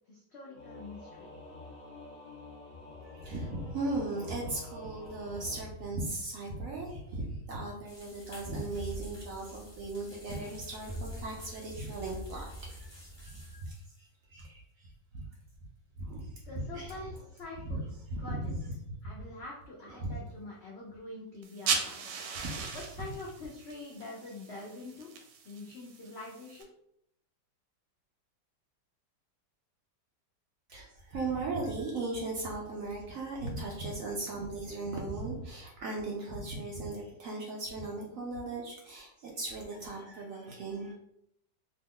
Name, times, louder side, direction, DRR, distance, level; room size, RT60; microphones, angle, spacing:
voice 1, 0.1-1.3 16.5-17.8 18.1-18.4 19.0-22.0 22.7-25.1 25.4-26.7, left 2 dB, 70° left, -4 dB, 0.6 m, -45 dB
Singing / Musical instrument, 0.5-5.6, left 2 dB, 45° left, 0.9 m, -48 dB
voice 2, 3.1-15.3 16.0-17.2 17.7-17.8 18.1-18.7 19.9-20.2 22.3-22.8 30.7-40.9, right 2 dB, 65° right, -1 dB, 0.8 m, -38 dB
sound 1, 7.9-13.9, equal, 25° left, 0.5 m, -45 dB
sound 2, 21.4-26.6, right 6 dB, 85° right, 1.2 m, -38 dB
2.9 x 2.0 x 3.6 m, 0.75 s
omnidirectional pair, 1.8 m